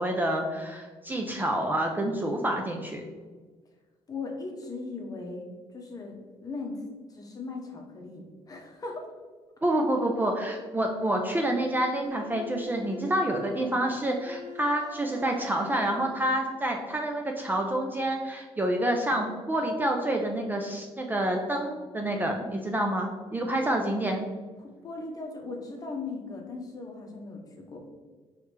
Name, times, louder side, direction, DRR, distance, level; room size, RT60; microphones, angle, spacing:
voice 1, 0.0-3.0 9.6-24.2, right 1 dB, 15° right, 2 dB, 0.4 m, -28 dB
voice 2, 4.1-5.5 5.7-6.8 7.1-9.1 24.6-27.8, left 3 dB, 30° left, 1 dB, 0.9 m, -38 dB
Bowed string instrument, 12.0-16.3, left 1 dB, 40° right, 0.8 m, -44 dB
4.7 x 3.2 x 3.3 m, 1.4 s
cardioid pair, 115°, 12 cm